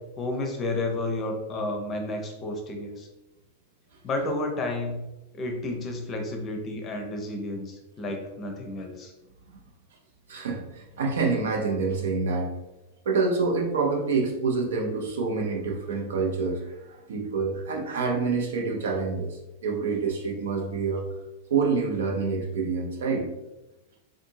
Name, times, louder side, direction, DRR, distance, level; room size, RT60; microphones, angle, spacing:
voice 1, 0.0-3.1 4.0-5.1 5.3-9.1, left 2 dB, 30° left, 3 dB, 0.6 m, -31 dB
voice 2, 10.3-12.5 13.1-21.0 21.5-23.3, right 4 dB, 65° right, 1 dB, 0.6 m, -27 dB
3.7 x 2.6 x 2.7 m, 0.96 s
figure-of-eight pair, 90°, 0 cm